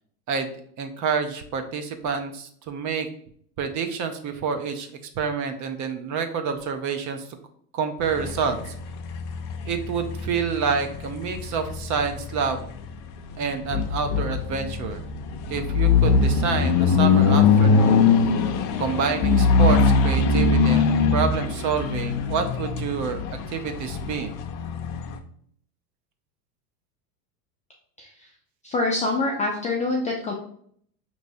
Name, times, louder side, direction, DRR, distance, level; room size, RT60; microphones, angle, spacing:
voice 1, 0.8-3.1 3.6-4.9 5.2-7.2 7.7-8.7 9.6-12.7 13.4-15.0 15.5-18.0 18.8-23.2 23.5-24.3, right 6 dB, 35° right, 7 dB, 0.7 m, -28 dB
sound 1, 8.0-25.2, left 5 dB, 50° left, 0.7 m, -22 dB
voice 2, 28.0-28.3 28.6-30.3, left 2 dB, 15° left, -1 dB, 0.3 m, -25 dB
5.3 x 3.0 x 2.6 m, 0.62 s
hypercardioid pair, 100°, 49 cm